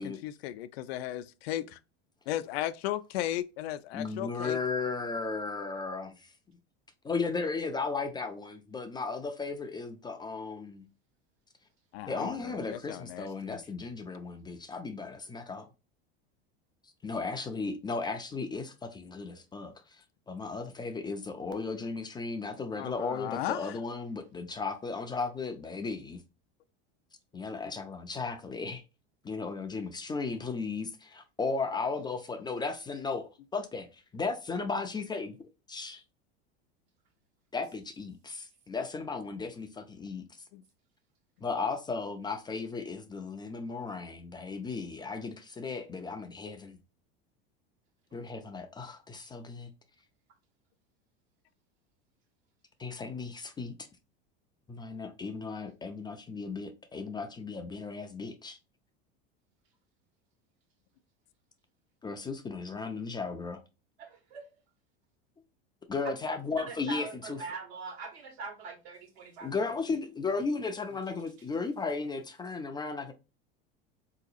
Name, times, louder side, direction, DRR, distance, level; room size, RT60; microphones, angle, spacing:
voice 1, 0.0-1.8 2.3-4.6 11.9-13.6 22.7-23.8 40.5-40.6, left 13 dB, 80° left, 0.5 m, -36 dB
voice 2, 3.9-6.3 7.0-10.8 12.1-15.7 17.0-19.7 20.3-26.2 27.3-28.8 29.2-35.4 35.7-36.0 37.5-40.2 41.4-46.8 48.1-49.7 52.8-53.7 54.7-58.6 62.0-63.6 65.9-67.4 69.4-73.1, left 4 dB, 15° left, 0.3 m, -35 dB
voice 3, 64.0-64.4 66.0-69.6 71.4-71.5, right 4 dB, 80° right, 1.4 m, -43 dB
3.9 x 2.8 x 2.5 m
supercardioid pair, 120°, 31 cm